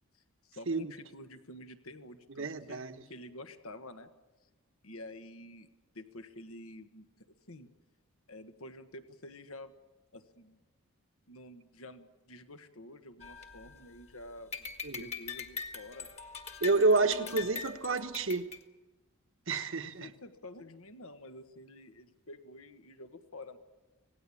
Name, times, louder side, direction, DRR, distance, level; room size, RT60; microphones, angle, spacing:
voice 1, 0.5-4.1 4.8-5.7 5.9-7.1 7.5-7.7 8.3-9.7 10.1-10.6 11.3-14.7 15.0-16.1 16.7-17.5 19.8-23.6, left 1 dB, 70° left, 9 dB, 1.5 m, -49 dB
voice 2, 2.4-3.0 14.8-15.0 16.6-18.4 19.5-20.1, right 3 dB, 60° right, 7 dB, 1.3 m, -29 dB
sound 1, 13.2-14.1 14.5-18.6, left 6 dB, 30° left, 1.7 m, -42 dB
26.0 x 18.5 x 8.6 m, 1.2 s
head